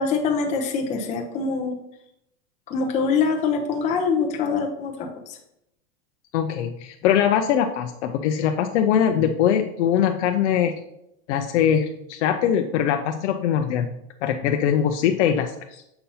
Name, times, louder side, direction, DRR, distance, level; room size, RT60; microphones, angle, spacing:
voice 1, 0.0-1.8 2.7-5.4, left 5 dB, 20° left, 2 dB, 0.6 m, -24 dB
voice 2, 6.3-10.7 11.3-13.9 14.2-15.8, left 9 dB, 85° left, 5 dB, 0.6 m, -22 dB
6.8 x 2.8 x 5.4 m, 0.80 s
supercardioid pair, 160°, 34 cm